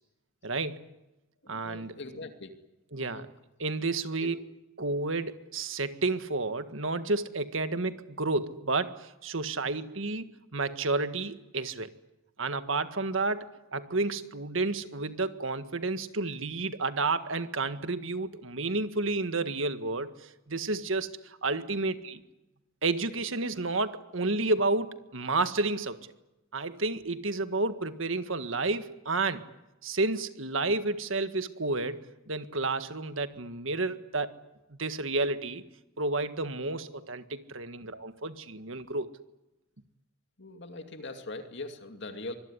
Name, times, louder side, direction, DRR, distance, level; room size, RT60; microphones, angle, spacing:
voice 1, 0.4-0.8 1.5-2.0 2.9-3.3 3.6-4.4 4.8-10.3 10.5-11.9 12.4-22.2 22.8-26.1 26.5-29.4 29.8-34.3 34.7-35.6 36.0-39.1, right 3 dB, 70° right, 10 dB, 1.7 m, -31 dB
voice 2, 1.4-2.5 3.0-3.3 4.2-4.4 40.4-42.3, left 2 dB, 55° left, 6 dB, 2.5 m, -41 dB
25.0 x 21.0 x 9.9 m, 0.97 s
head